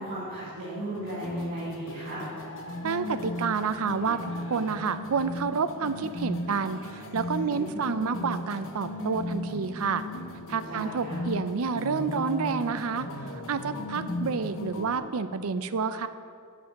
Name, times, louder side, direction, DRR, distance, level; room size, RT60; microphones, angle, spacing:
voice 1, 0.0-2.2 7.5-8.2 10.6-11.2, right 1 dB, 40° right, -11 dB, 2.7 m, -36 dB
sound 1, 0.9-15.0, left 1 dB, 60° left, 1.0 m, -36 dB
voice 2, 2.8-4.2 4.5-10.1 10.5-13.1 13.5-16.1, right 5 dB, 70° right, 12 dB, 0.5 m, -29 dB
8.1 x 7.6 x 6.5 m, 2.3 s
head